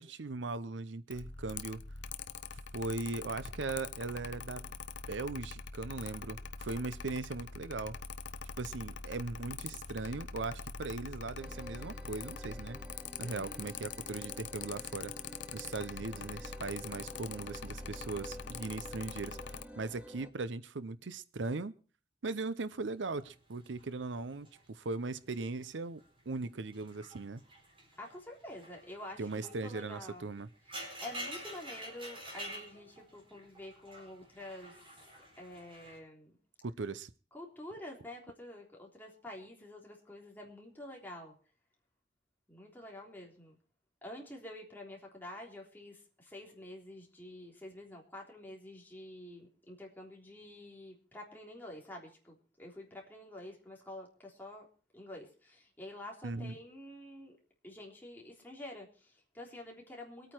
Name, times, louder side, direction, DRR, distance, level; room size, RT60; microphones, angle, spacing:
voice 1, 0.0-1.8 2.7-4.7 5.1-8.0 8.6-12.8 13.2-15.1 15.5-19.4 19.8-21.7 22.2-27.4 29.2-30.5 36.6-37.1 56.2-56.6, right 3 dB, 75° right, 16 dB, 0.7 m, -39 dB
Mechanical fan, 1.1-19.6, left 5 dB, 70° left, 0.8 m, -44 dB
sound 1, 11.4-20.3, equal, 10° right, 1.3 m, -51 dB
voice 2, 13.2-13.7 28.0-30.3 30.7-34.9 35.4-36.3 37.3-41.4 42.5-43.6 44.0-54.7 54.9-57.4 57.6-60.3, left 1 dB, 10° left, -1 dB, 3.5 m, -48 dB
sound 2, 23.1-25.5 25.8-26.2 26.6-36.0, right 1 dB, 30° right, 4.6 m, -48 dB
23.5 x 9.1 x 4.5 m, 0.38 s
head